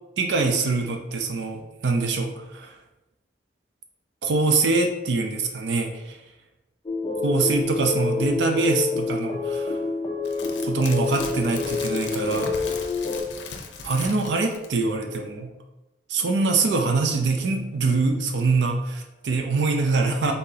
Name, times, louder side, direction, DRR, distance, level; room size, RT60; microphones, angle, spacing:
voice 1, 0.2-2.8 4.2-6.2 7.2-9.8 10.6-12.5 13.8-15.5 16.1-20.3, right 3 dB, 85° right, 4 dB, 0.5 m, -24 dB
sound 1, 6.9-13.2, left 4 dB, 25° left, 0.4 m, -27 dB
sound 2, 10.2-14.8 15.1-15.2, left 5 dB, 80° left, 0.6 m, -37 dB
3.9 x 3.8 x 2.7 m, 0.98 s
head